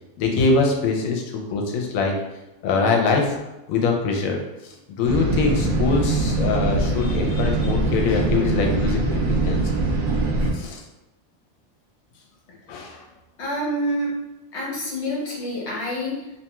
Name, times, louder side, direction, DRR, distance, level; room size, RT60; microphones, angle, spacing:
voice 1, 0.2-2.2 2.6-3.4 3.7-4.4 5.0-9.6 10.5-10.8 12.7-13.0, left 4 dB, 80° left, 1 dB, 1.0 m, -23 dB
sound 1, 5.0-10.5, right 2 dB, 70° right, 0.5 m, -22 dB
voice 2, 13.4-14.1 14.5-16.4, equal, 60° left, -4 dB, 1.1 m, -27 dB
2.8 x 2.2 x 2.9 m, 0.96 s
omnidirectional pair, 1.4 m